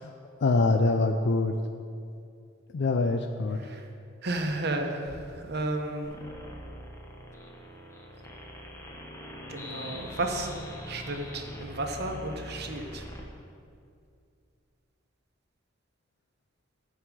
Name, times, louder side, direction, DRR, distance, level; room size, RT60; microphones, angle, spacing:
voice 1, 0.4-1.6 2.7-3.6, left 3 dB, 60° left, 6 dB, 0.4 m, -24 dB
voice 2, 4.2-6.1 9.5-10.5 10.9-13.0, right 2 dB, 55° right, 4 dB, 1.0 m, -33 dB
sound 1, 6.0-13.2, equal, 15° left, 1.1 m, -43 dB
14.0 x 4.7 x 6.2 m, 2.4 s
head